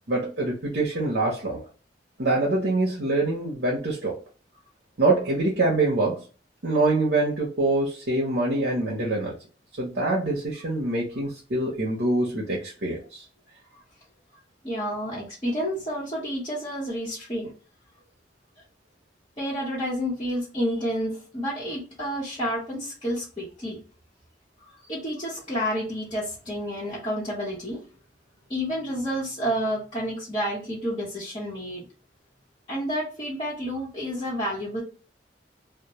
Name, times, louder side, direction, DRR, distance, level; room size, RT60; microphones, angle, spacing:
voice 1, 0.1-1.6 2.2-4.2 5.0-6.2 6.6-9.3 9.8-13.2, right 2 dB, 70° right, 0.7 m, -25 dB
voice 2, 14.6-17.5 19.4-23.8 24.9-27.8 28.5-31.8 32.7-34.8, equal, 25° left, 0.9 m, -30 dB
2.1 x 2.1 x 2.8 m
head